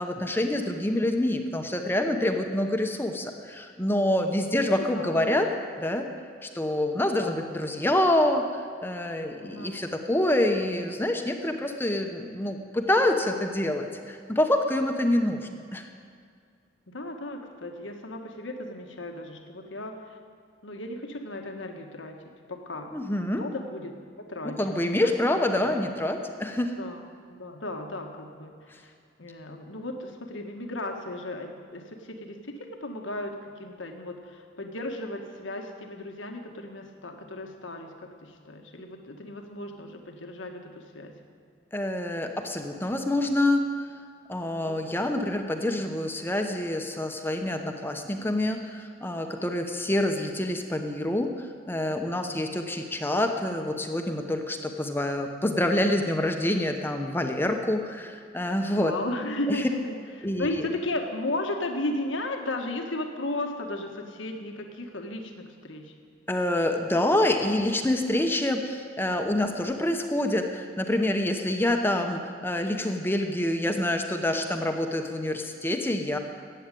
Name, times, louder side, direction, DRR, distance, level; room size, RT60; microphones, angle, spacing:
voice 1, 0.0-5.5 5.8-6.1 6.4-15.9 22.9-23.4 24.4-26.7 41.7-43.9 44.3-58.9 59.5-59.6 60.2-60.7 66.3-76.2, left 1 dB, 10° left, 4 dB, 0.9 m, -27 dB
voice 2, 4.4-5.2 7.2-7.4 9.4-9.8 16.9-20.2 20.6-22.2 22.5-22.9 23.3-24.6 25.0-25.7 26.8-27.1 27.4-28.9 29.2-41.2 44.7-45.0 52.2-52.5 58.6-65.9, left 1 dB, 90° left, 3 dB, 1.5 m, -35 dB
14.5 x 8.7 x 9.1 m, 2.2 s
head